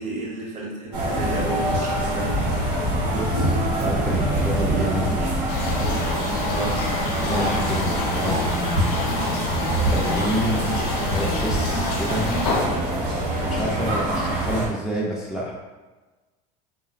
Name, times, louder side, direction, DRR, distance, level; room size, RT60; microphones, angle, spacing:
voice 1, 0.0-2.3 6.5-6.8, right 2 dB, 40° right, -3 dB, 0.7 m, -31 dB
sound 1, 0.9-14.7, right 1 dB, 90° right, 0.7 m, -25 dB
voice 2, 3.1-5.3 7.2-9.0 9.9-10.7 11.0-12.3 13.4-15.5, right 1 dB, 5° right, -5 dB, 0.4 m, -29 dB
sound 2, 5.5-12.7, left 2 dB, 85° left, 0.6 m, -27 dB
2.5 x 2.0 x 2.5 m, 1.2 s
supercardioid pair, 105°, 19 cm